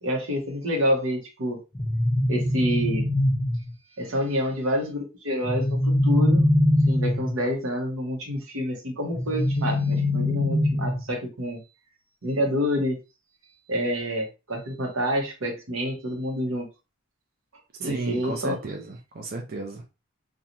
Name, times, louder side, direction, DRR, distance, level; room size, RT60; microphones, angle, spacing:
voice 1, 0.0-1.6 2.3-3.0 4.0-6.5 6.9-11.6 12.2-13.0 13.7-16.7 17.8-18.6, equal, 85° right, 0.9 m, -28 dB
sound 1, 1.7-3.7 5.4-7.4 9.2-11.1, left 1 dB, 15° left, 0.5 m, -23 dB
voice 2, 17.8-19.9, right 3 dB, 45° right, 0.5 m, -33 dB
2.9 x 2.3 x 2.5 m
head